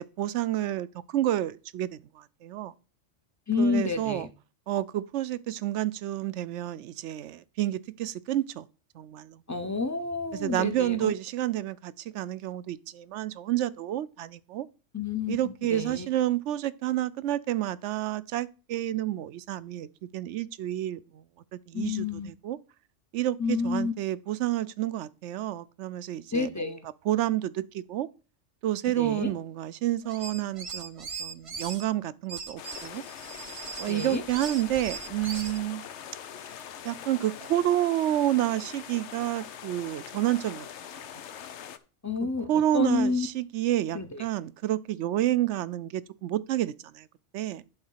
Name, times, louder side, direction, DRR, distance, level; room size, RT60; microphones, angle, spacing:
voice 1, 0.0-2.7 3.6-4.3 4.7-8.7 8.9-9.4 10.3-14.7 15.3-21.2 21.5-22.6 23.1-26.8 27.0-28.1 28.6-33.0 33.8-35.8 36.8-40.7 40.9-41.0 42.5-47.1 47.3-47.6, right 13 dB, 75° right, 0.9 m, -29 dB
voice 2, 3.5-4.3 9.5-11.1 14.9-15.4 15.7-16.1 21.7-22.3 23.4-23.9 26.3-26.8 29.0-29.3 33.9-34.2 42.0-43.3 43.9-44.2, left 4 dB, 20° left, 0.6 m, -29 dB
sound 1, 30.0-31.8 32.3-35.6, right 5 dB, 35° right, 0.7 m, -39 dB
sound 2, 32.6-41.8, left 9 dB, 70° left, 1.0 m, -43 dB
11.0 x 4.0 x 5.6 m
omnidirectional pair, 1.2 m